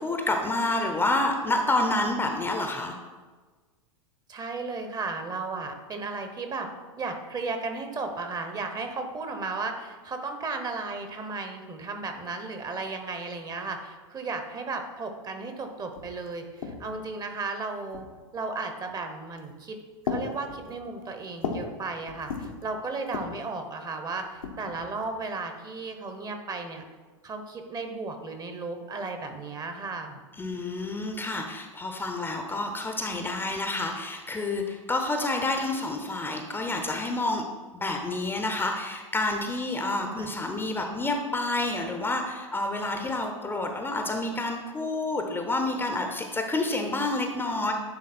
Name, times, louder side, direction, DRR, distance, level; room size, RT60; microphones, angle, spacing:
voice 1, 0.0-2.9 30.4-37.4 37.7-47.7, left 2 dB, 10° left, 4 dB, 0.7 m, -29 dB
voice 2, 4.3-6.7 7.0-18.1 18.3-19.8 20.0-26.8 27.2-30.2 40.0-40.3, right 3 dB, 20° right, 6 dB, 0.9 m, -35 dB
sound 1, 15.6-15.7 15.9-17.1 17.9-18.4 19.2-19.6 20.0-21.8 22.1-22.6 23.0-23.5 24.2-25.2, left 5 dB, 80° left, 1.1 m, -36 dB
9.7 x 3.5 x 4.3 m, 1.4 s
hypercardioid pair, 100°, 17 cm